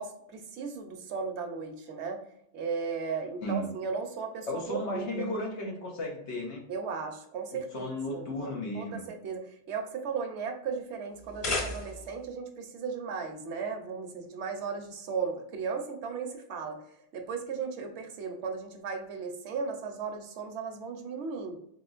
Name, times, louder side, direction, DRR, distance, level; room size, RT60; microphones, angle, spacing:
voice 1, 0.0-2.2 2.5-5.3 6.7-16.8 17.1-21.6, right 5 dB, 75° right, 5 dB, 1.0 m, -36 dB
voice 2, 3.4-3.7 4.5-6.6 7.5-9.0, left 1 dB, 80° left, -1 dB, 1.4 m, -34 dB
sound 1, 11.1-12.3, left 2 dB, 35° left, 0.6 m, -34 dB
4.0 x 3.6 x 2.4 m, 0.75 s
omnidirectional pair, 1.2 m